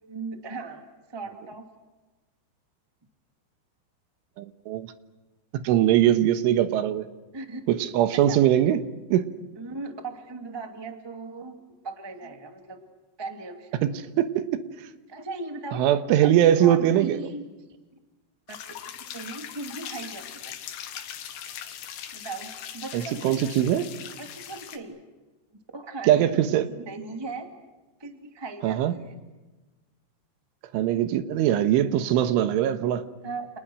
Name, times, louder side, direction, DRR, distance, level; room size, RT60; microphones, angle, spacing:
voice 1, 0.0-0.8 1.1-1.6 7.3-7.6 8.1-8.4 9.5-12.8 13.2-14.0 15.1-15.8 16.2-17.4 18.5-18.6 19.0-20.5 22.1-23.5 24.2-25.0 25.7-27.5 28.0-29.1 33.2-33.5, right 3 dB, 15° right, 5 dB, 1.0 m, -38 dB
voice 2, 4.4-4.9 5.6-7.1 7.7-8.8 9.1-9.3 13.8-13.9 14.2-14.6 15.7-17.2 22.9-23.9 26.1-26.7 28.6-28.9 30.7-33.1, right 11 dB, 85° right, 10 dB, 3.7 m, -21 dB
sound 1, 18.5-24.8, left 10 dB, 75° left, 4.0 m, -40 dB
30.0 x 29.5 x 6.4 m, 1.2 s
omnidirectional pair, 5.5 m